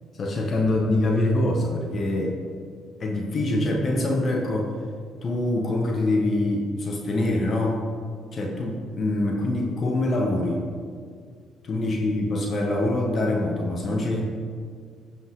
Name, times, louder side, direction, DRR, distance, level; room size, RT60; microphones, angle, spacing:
voice 1, 0.2-2.4 3.0-4.7 5.2-7.8 8.3-10.6 11.6-14.2, left 1 dB, 50° left, 1 dB, 1.5 m, -24 dB
14.5 x 5.4 x 3.8 m, 2.1 s
hypercardioid pair, 55°, 0 cm